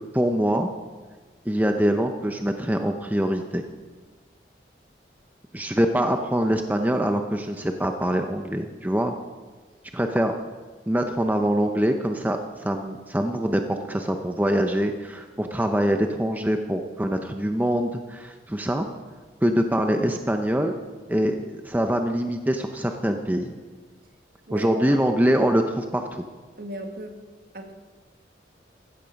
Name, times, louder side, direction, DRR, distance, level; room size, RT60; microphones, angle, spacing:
voice 1, 0.1-0.7 1.5-3.6 5.5-9.1 9.9-10.4 10.9-18.9 19.4-20.7 21.1-23.5 24.5-26.2, equal, 10° right, 5 dB, 0.6 m, -24 dB
voice 2, 24.5-25.0 26.6-27.2 27.5-27.7, right 1 dB, 55° right, 5 dB, 1.6 m, -35 dB
15.0 x 12.5 x 5.2 m, 1.4 s
head